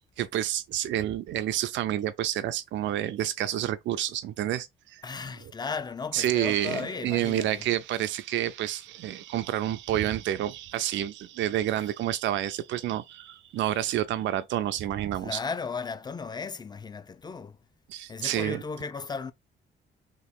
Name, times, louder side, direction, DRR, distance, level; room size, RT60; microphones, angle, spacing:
voice 1, 0.0-5.0 5.4-5.5 6.1-15.4 17.9-18.6, right 12 dB, 70° right, 0.4 m, -29 dB
voice 2, 5.0-7.6 15.2-17.6 18.1-19.3, left 5 dB, 20° left, 0.5 m, -35 dB
3.0 x 3.0 x 4.1 m
cardioid pair, 90°, 20 cm